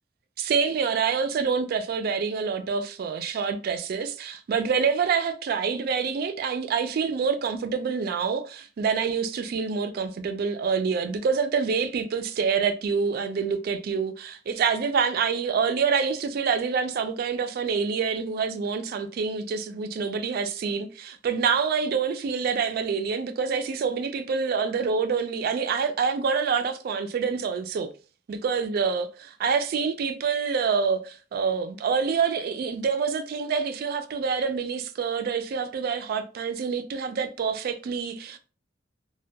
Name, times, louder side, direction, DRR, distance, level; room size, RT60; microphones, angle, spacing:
voice 1, 0.4-27.9 28.3-38.4, right 5 dB, 55° right, 0.3 m, -26 dB
2.1 x 2.1 x 2.7 m
head